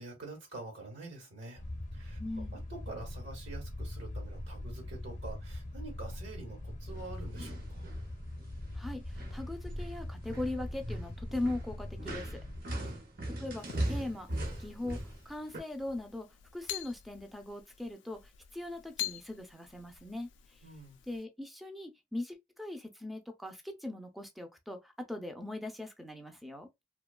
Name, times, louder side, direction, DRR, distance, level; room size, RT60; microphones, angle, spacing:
voice 1, 0.0-1.6 1.9-2.2 2.5-7.9 12.7-13.0 20.6-21.0, right 2 dB, 75° right, 1.0 m, -46 dB
sound 1, 1.6-12.6, left 1 dB, 40° left, 0.6 m, -42 dB
voice 2, 2.2-2.6 8.7-12.4 13.4-14.3 14.6-16.3 16.5-20.6 21.1-26.7, left 2 dB, ahead, 0.4 m, -40 dB
sound 2, 6.9-8.1 8.4-8.8 9.1-15.6, right 1 dB, 55° right, 0.7 m, -39 dB
sound 3, 13.6-21.2, left 14 dB, 75° left, 0.3 m, -46 dB
2.7 x 2.2 x 2.2 m
head